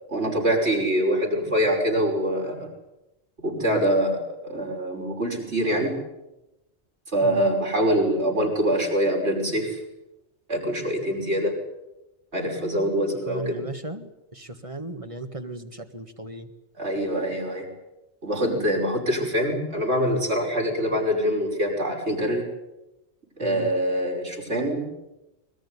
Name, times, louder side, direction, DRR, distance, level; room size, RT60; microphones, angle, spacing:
voice 1, 0.1-2.7 3.4-6.0 7.1-9.8 10.5-11.6 12.3-13.6 16.8-17.7 18.2-22.5 23.4-24.9, equal, 75° right, 0 dB, 6.0 m, -24 dB
voice 2, 13.3-16.5 23.4-23.7, right 1 dB, 30° right, 6 dB, 1.9 m, -36 dB
22.5 x 21.5 x 9.8 m, 0.97 s
omnidirectional pair, 1.1 m